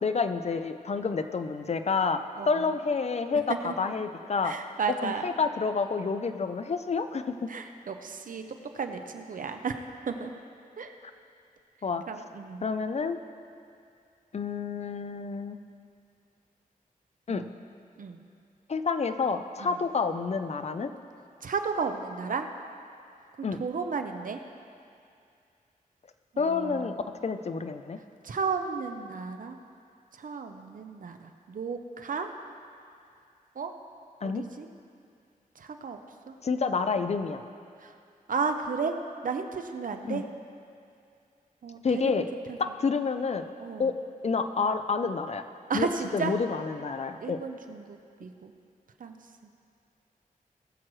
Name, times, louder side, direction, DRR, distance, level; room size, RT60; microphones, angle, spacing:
voice 1, 0.0-2.2 2.5-4.5 5.0-7.5 11.8-12.0 12.6-13.2 14.3-15.6 17.3-17.5 18.7-20.9 23.4-23.6 26.4-27.0 27.2-28.0 34.2-34.4 36.4-37.5 40.0-40.2 41.8-42.3 42.6-43.4 43.8-43.9 44.2-45.4 45.7-45.9 46.1-47.4, left 5 dB, 50° left, 9 dB, 0.5 m, -29 dB
voice 2, 4.4-5.3 7.5-8.4 8.7-10.3 10.8-10.9 12.1-12.7 17.3-17.5 18.0-18.2 19.6-19.7 21.4-22.5 23.6-24.4 26.3-27.0 28.2-29.6 30.1-32.3 33.6-33.7 34.2-34.7 35.6-36.0 36.3-36.4 37.8-37.9 38.3-38.9 39.2-40.2 41.6-42.6 43.6-43.9 45.7-46.3 47.2-48.5 49.0-49.2, right 5 dB, 65° right, 6 dB, 0.8 m, -33 dB
19.5 x 7.5 x 3.2 m, 2.4 s
wide cardioid pair, 95°, 15 cm